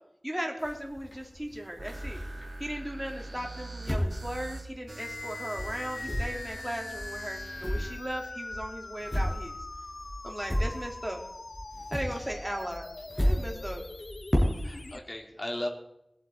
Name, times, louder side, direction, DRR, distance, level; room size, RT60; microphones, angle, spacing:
voice 1, 0.2-2.2 2.6-9.6 10.2-11.2 11.9-12.9 13.2-13.8, equal, 15° right, 1 dB, 3.1 m, -37 dB
sound 1, 0.6-2.7 3.2-5.3 5.6-11.3 11.5-14.9, equal, 20° left, 5.1 m, -33 dB
sound 2, 1.8-8.0, right 2 dB, 55° right, 1.6 m, -43 dB
sound 3, 5.0-15.0, left 3 dB, 75° left, 0.8 m, -42 dB
voice 2, 14.6-15.7, left 1 dB, 35° left, 1 dB, 3.2 m, -37 dB
21.0 x 8.6 x 4.5 m, 0.81 s
wide cardioid pair, 50°, 0 cm